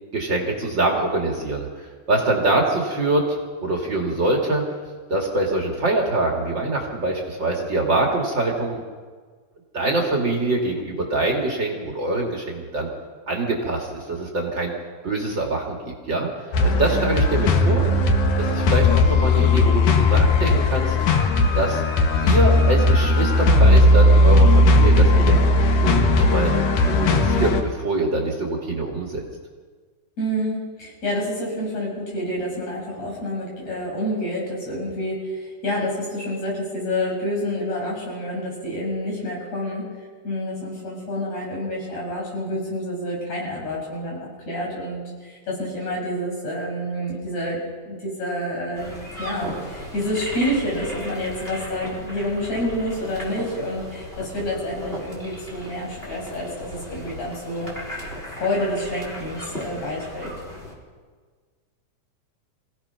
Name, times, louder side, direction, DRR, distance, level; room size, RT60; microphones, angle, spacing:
voice 1, 0.1-3.4 3.6-4.6 5.1-8.8 9.7-12.9 13.3-14.7 15.0-17.9 18.4-21.0 21.5-21.8 22.2-25.4 25.8-26.5 26.8-29.2, right 2 dB, 40° right, -1 dB, 2.7 m, -24 dB
sound 1, 16.5-27.6, left 2 dB, 75° left, 3.0 m, -17 dB
voice 2, 30.2-39.9 40.2-44.2 44.5-47.6 47.8-57.7 58.3-60.3, left 1 dB, 60° left, -3 dB, 7.7 m, -28 dB
sound 2, 48.7-60.7, equal, 20° left, 4.3 m, -36 dB
26.5 x 17.0 x 5.8 m, 1.6 s
omnidirectional pair, 3.6 m